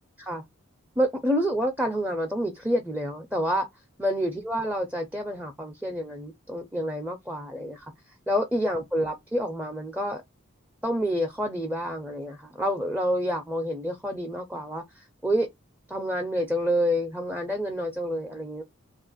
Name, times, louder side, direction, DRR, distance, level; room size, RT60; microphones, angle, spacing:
voice 1, 1.0-3.7 4.0-7.9 8.3-10.2 10.8-15.5 15.9-18.6, equal, 5° right, 0.4 m, -28 dB
2.8 x 2.4 x 3.8 m
head